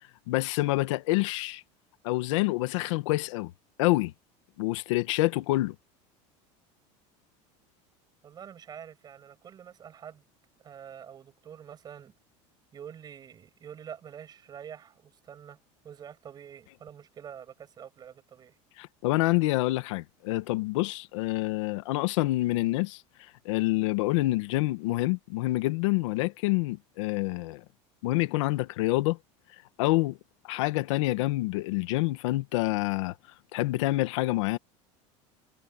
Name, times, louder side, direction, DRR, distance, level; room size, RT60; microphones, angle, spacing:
voice 1, 0.3-1.6 2.0-3.5 3.8-4.1 4.6-5.8 18.8-27.6 28.0-29.2 29.8-30.2 30.4-33.1 33.5-34.6, left 19 dB, 80° left, 1.7 m, -27 dB
voice 2, 8.2-10.2 10.6-12.1 12.7-15.6 15.8-18.6, right 8 dB, 25° right, 7.8 m, -46 dB
cardioid pair, 155°, 16 cm